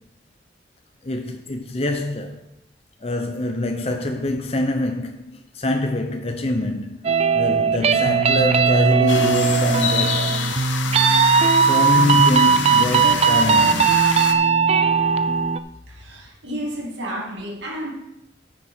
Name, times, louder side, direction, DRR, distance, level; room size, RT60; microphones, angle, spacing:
voice 1, 1.0-2.4 3.0-10.4 11.6-14.1, left 2 dB, 35° left, 0.7 m, -25 dB
sound 1, 7.0-15.6, right 6 dB, 35° right, 0.4 m, -18 dB
sound 2, 9.1-14.3, left 6 dB, 90° left, 1.0 m, -28 dB
voice 2, 15.9-17.9, equal, 75° right, 2.4 m, -31 dB
13.5 x 6.1 x 4.3 m
head